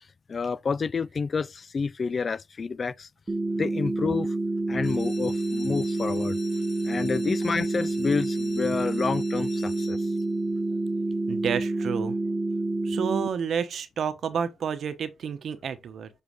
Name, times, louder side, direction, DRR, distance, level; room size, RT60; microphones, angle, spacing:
voice 1, 0.3-3.1 3.5-4.4 4.7-6.4 6.8-10.0, left 5 dB, 50° left, 0.4 m, -29 dB
sound 1, 3.3-13.3, right 2 dB, 25° right, 1.0 m, -28 dB
sound 2, 4.8-10.4 11.1-11.5 11.9-12.0 12.3-12.4 12.8-12.9, left 5 dB, 65° left, 4.0 m, -47 dB
voice 2, 11.3-12.2 12.8-16.1, right 7 dB, 70° right, 0.9 m, -30 dB
7.2 x 4.5 x 3.1 m
cardioid pair, 60°, 0 cm